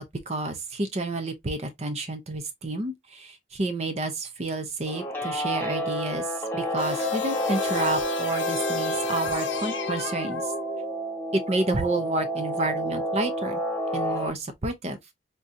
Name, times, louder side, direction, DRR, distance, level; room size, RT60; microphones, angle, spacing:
voice 1, 0.0-6.2 6.5-10.5 11.3-13.6 13.9-15.0, right 2 dB, 35° right, 0.6 m, -30 dB
Guitar, 4.9-14.3, right 1 dB, 10° left, 0.9 m, -30 dB
sound 1, 6.8-11.1, left 6 dB, 75° left, 0.8 m, -32 dB
3.6 x 2.7 x 2.5 m
head